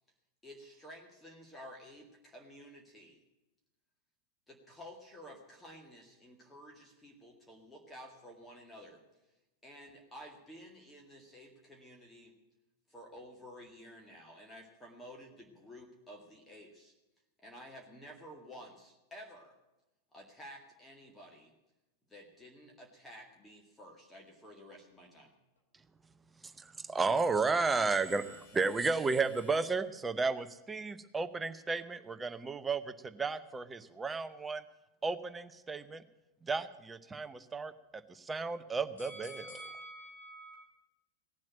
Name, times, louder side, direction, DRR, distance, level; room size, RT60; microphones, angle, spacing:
voice 1, 0.4-3.2 4.5-9.0 9.6-12.3 12.9-16.9 17.4-19.6 20.1-21.5 22.1-25.3, equal, 10° left, 2.0 m, -52 dB
voice 2, 26.6-34.6 35.0-36.0 36.4-37.7 38.1-39.7, right 4 dB, 15° right, 0.8 m, -33 dB
voice 3, 27.7-29.6 39.0-40.6, equal, 70° left, 3.1 m, -51 dB
17.5 x 7.5 x 8.9 m
figure-of-eight pair, 90°, 0 cm